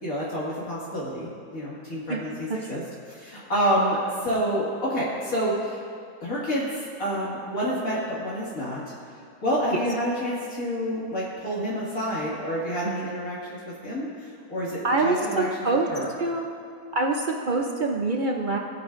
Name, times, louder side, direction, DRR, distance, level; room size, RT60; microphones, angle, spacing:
voice 1, 0.0-2.8 3.1-5.8 6.2-6.7 7.0-8.8 9.4-14.1 14.5-15.5 15.9-16.1, equal, 60° left, -7 dB, 2.4 m, -28 dB
voice 2, 14.8-15.9 16.2-16.5 16.9-18.6, right 3 dB, 65° right, 1 dB, 0.5 m, -25 dB
17.5 x 9.2 x 2.5 m, 2.5 s
omnidirectional pair, 1.7 m